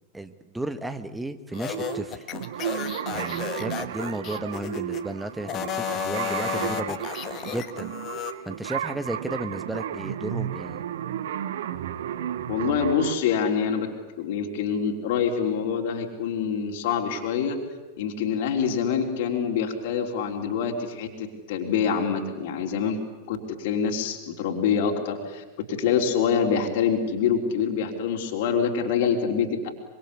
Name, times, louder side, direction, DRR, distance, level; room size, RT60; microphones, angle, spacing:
voice 1, 0.1-2.2 3.1-7.0 7.4-7.9 8.4-10.8, right 1 dB, 5° right, 10 dB, 1.6 m, -33 dB
sound 1, 1.5-5.0 5.4-8.3, left 11 dB, 35° left, 1.7 m, -33 dB
sound 2, 1.5-13.2, right 10 dB, 60° right, 1.2 m, -33 dB
voice 2, 12.5-13.9 14.2-17.6 18.0-23.0 23.3-29.7, left 7 dB, 50° left, 3 dB, 3.6 m, -26 dB
25.0 x 24.5 x 8.4 m, 1.2 s
figure-of-eight pair, 90°, 0 cm